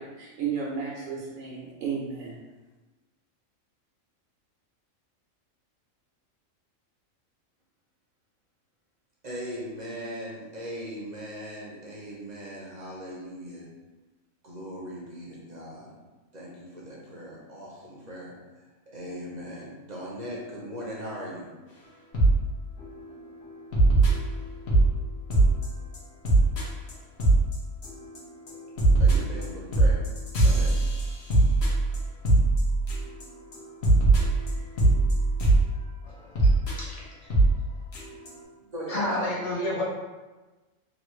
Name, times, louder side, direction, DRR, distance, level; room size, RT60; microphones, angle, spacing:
voice 1, 0.0-2.4, right 6 dB, 75° right, -4 dB, 0.9 m, -33 dB
voice 2, 9.2-13.7 14.4-15.9 16.3-18.3 18.9-21.5 29.0-30.0 30.4-30.7 38.7-39.2, equal, 45° right, -5 dB, 0.6 m, -39 dB
sound 1, 22.1-22.4 22.8-23.0 23.7-24.9 25.3-25.7 25.9-26.0 26.2-26.6 26.9-27.0 27.2-27.5 27.8-28.2 28.5-33.2 33.5-33.6 33.8-35.6 36.4-36.7 37.3-37.5 37.9-38.0 38.3-38.4, right 2 dB, 55° left, 1.0 m, -20 dB
voice 3, 36.1-36.5 36.8-37.0 38.9-39.8, left 1 dB, 35° left, -7 dB, 0.8 m, -30 dB
3.0 x 2.4 x 3.0 m, 1.2 s
omnidirectional pair, 1.4 m